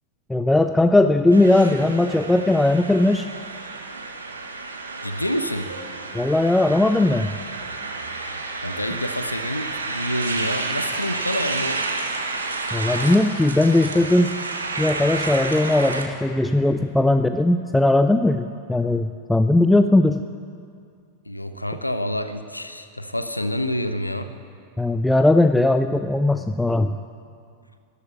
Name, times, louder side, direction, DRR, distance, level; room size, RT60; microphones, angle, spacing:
voice 1, 0.3-3.3 6.1-7.3 12.7-14.4 14.8-20.2 24.8-27.0, left 2 dB, 5° left, 9 dB, 0.4 m, -18 dB
sound 1, 1.3-16.1, right 3 dB, 75° right, 1.1 m, -30 dB
voice 2, 5.0-5.7 8.6-11.8 21.3-24.3, equal, 85° left, 10 dB, 0.6 m, -28 dB
13.0 x 8.3 x 9.9 m, 2.3 s
figure-of-eight pair, 90°, 0 cm